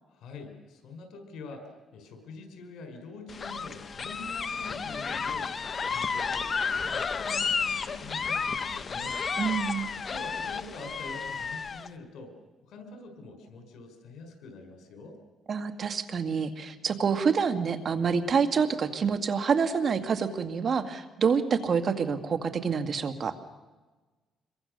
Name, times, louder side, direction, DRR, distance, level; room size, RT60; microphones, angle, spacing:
voice 1, 0.1-9.2 10.0-12.3 12.6-15.2, left 3 dB, 75° left, 5 dB, 5.2 m, -45 dB
sound 1, 3.3-11.9, left 5 dB, 40° left, 1.1 m, -32 dB
voice 2, 9.4-9.9 15.5-23.3, right 6 dB, 50° right, 9 dB, 2.0 m, -27 dB
26.0 x 22.5 x 6.7 m, 1.2 s
cardioid pair, 90°, 0 cm